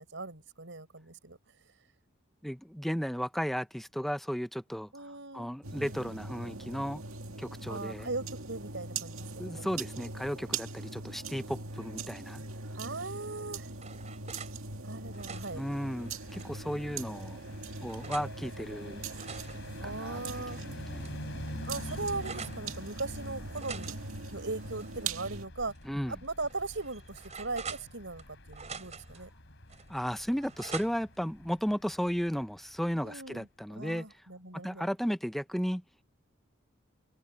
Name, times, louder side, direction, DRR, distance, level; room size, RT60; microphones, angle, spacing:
voice 1, 0.0-1.4 4.9-5.5 7.7-9.8 12.8-13.7 14.8-15.6 19.8-20.6 21.6-24.0 24.3-25.7 26.1-29.3 33.0-33.5 33.8-34.9, right 3 dB, 65° right, 7.0 m, -39 dB
voice 2, 2.4-4.9 5.3-7.0 7.4-8.1 9.4-12.4 15.5-17.4 17.8-19.1 19.8-20.2 20.5-21.1 25.8-26.2 29.9-34.2 34.6-35.8, equal, ahead, 0.8 m, -34 dB
sound 1, 5.6-25.4, right 4 dB, 85° right, 2.2 m, -41 dB
sound 2, 13.3-14.6 15.0-16.6 17.2-18.3 18.9-20.6 21.0-21.1 21.4-22.6 23.5-25.4 25.7-25.8 26.4-28.2 28.5-29.2 29.7-31.2, right 6 dB, 35° right, 3.8 m, -46 dB
sound 3, 15.1-33.1, left 1 dB, 65° left, 4.3 m, -47 dB
head